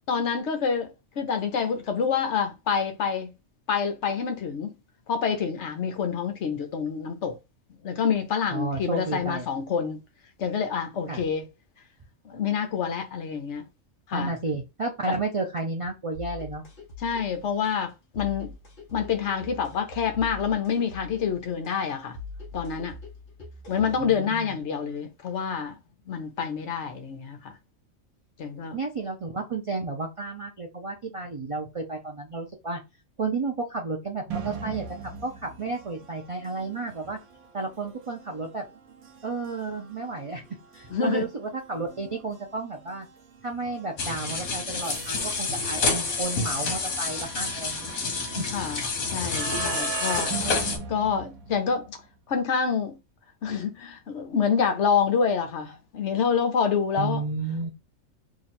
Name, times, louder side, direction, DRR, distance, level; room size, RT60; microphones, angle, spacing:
voice 1, 0.1-0.9 1.2-3.3 3.7-4.7 5.1-7.4 7.8-10.0 10.4-11.4 12.2-13.7 14.1-14.3 15.1-15.2 17.0-18.5 18.9-22.2 22.5-22.9 23.7-25.7 26.1-27.5 28.4-28.8 40.9-41.2 48.3-48.9 49.1-52.0 52.3-52.9 53.4-57.2, left 6 dB, 60° left, 1.0 m, -27 dB
voice 2, 8.5-9.4 11.1-11.2 14.1-16.6 24.0-24.5 28.7-32.8 33.2-34.8 35.2-37.2 37.5-38.6 39.2-40.4 40.7-43.1 43.4-47.9 48.3-48.4 57.0-57.7, right 3 dB, 60° right, 0.3 m, -32 dB
sound 1, 16.1-24.1, left 3 dB, 40° left, 1.2 m, -43 dB
sound 2, 34.3-52.0, right 6 dB, 90° right, 1.2 m, -40 dB
sound 3, 44.0-50.8, left 4 dB, 80° left, 1.3 m, -29 dB
3.0 x 2.4 x 4.1 m
omnidirectional pair, 1.4 m